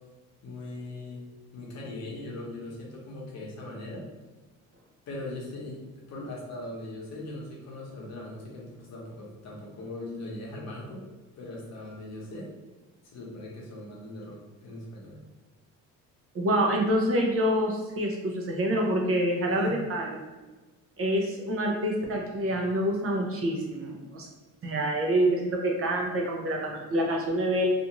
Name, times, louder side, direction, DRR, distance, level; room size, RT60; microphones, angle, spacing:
voice 1, 0.4-1.2 1.5-4.1 5.1-11.0 11.4-12.5 13.0-15.2 19.5-19.8, left 1 dB, 50° left, -3 dB, 0.9 m, -40 dB
voice 2, 16.3-20.0 21.0-24.3 24.6-27.7, right 1 dB, 40° right, 0 dB, 0.6 m, -26 dB
2.5 x 2.4 x 2.9 m, 1.2 s
cardioid pair, 125°, 33 cm